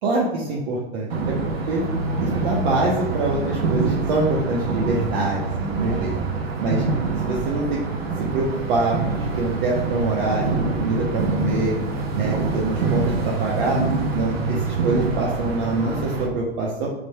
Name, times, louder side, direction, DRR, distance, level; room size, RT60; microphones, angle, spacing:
voice 1, 0.0-1.8 2.2-6.1 6.6-6.8 7.2-7.8 8.3-11.7 12.1-13.8 14.1-16.9, right 2 dB, 50° right, -3 dB, 1.3 m, -25 dB
sound 1, 1.1-16.3, right 4 dB, 70° right, 1.3 m, -25 dB
4.8 x 4.6 x 5.6 m, 0.97 s
figure-of-eight pair, 90°, 31 cm